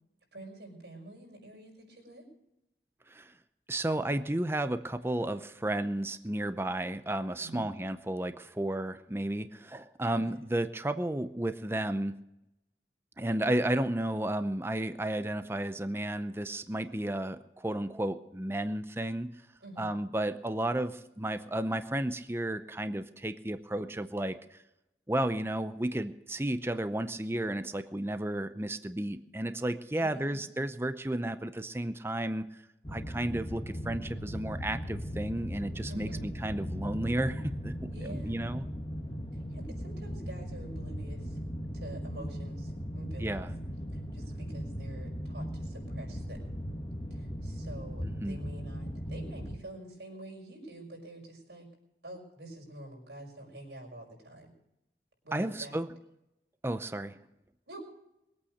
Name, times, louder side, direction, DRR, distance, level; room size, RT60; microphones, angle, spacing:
voice 1, 0.3-2.2 7.4-7.7 10.1-10.5 19.6-19.9 29.9-30.4 35.9-36.3 37.9-38.4 39.3-41.4 41.7-43.5 43.9-46.5 47.1-51.7 52.0-54.5 55.2-55.8 57.7-57.8, right 1 dB, 80° right, 0 dB, 5.8 m, -47 dB
voice 2, 3.7-12.2 13.2-19.3 19.8-24.6 25.1-32.5 32.9-37.7 38.0-38.6 43.2-43.5 48.0-48.4 55.3-55.9 56.6-57.2, right 1 dB, 15° right, 10 dB, 0.6 m, -33 dB
sound 1, 32.8-49.6, equal, 25° left, 1.3 m, -38 dB
22.0 x 8.6 x 6.5 m, 0.88 s
head